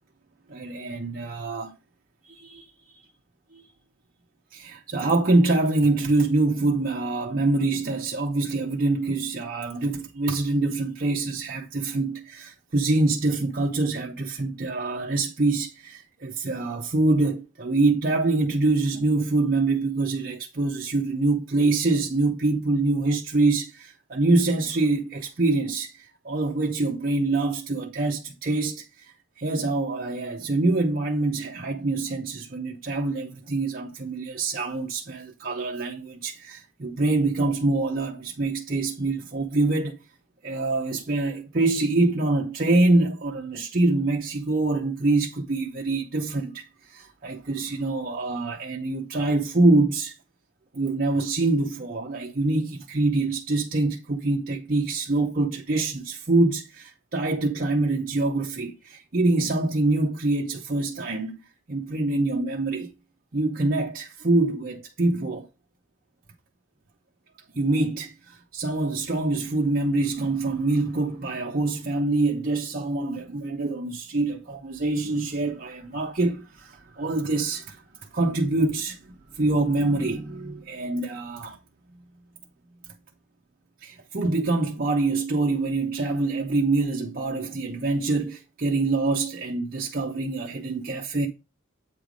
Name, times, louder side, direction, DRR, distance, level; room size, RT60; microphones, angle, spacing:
voice 1, 0.5-1.7 2.3-3.0 3.5-3.6 4.5-40.0 40.4-50.1 50.7-61.4 61.7-62.9 63.3-65.5 67.5-77.8 78.1-81.6 83.8-91.3, right 2 dB, 45° right, 0.7 m, -25 dB
8.2 x 3.3 x 5.0 m
head